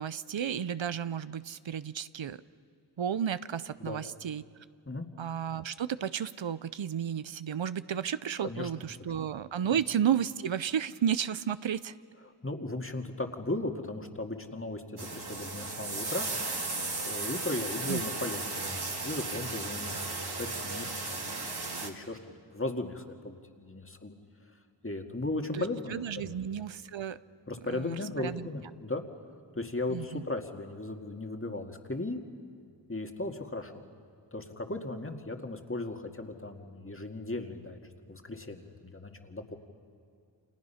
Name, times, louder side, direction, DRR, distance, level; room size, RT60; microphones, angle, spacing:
voice 1, 0.0-2.4 3.0-4.4 5.2-11.9 17.9-18.0 25.5-27.2 27.7-28.5 29.9-30.2, right 8 dB, 90° right, 15 dB, 0.7 m, -32 dB
voice 2, 8.4-8.7 12.4-16.3 17.1-20.0 20.4-21.3 21.8-22.2 22.5-24.2 24.8-26.3 27.5-29.0 29.5-32.2 32.9-33.8 34.3-37.8 38.1-39.6, left 2 dB, 30° left, 4 dB, 2.0 m, -36 dB
sound 1, 15.0-21.9, right 3 dB, 60° right, 2.1 m, -35 dB
29.5 x 27.5 x 5.7 m, 2.3 s
wide cardioid pair, 60°, 45 cm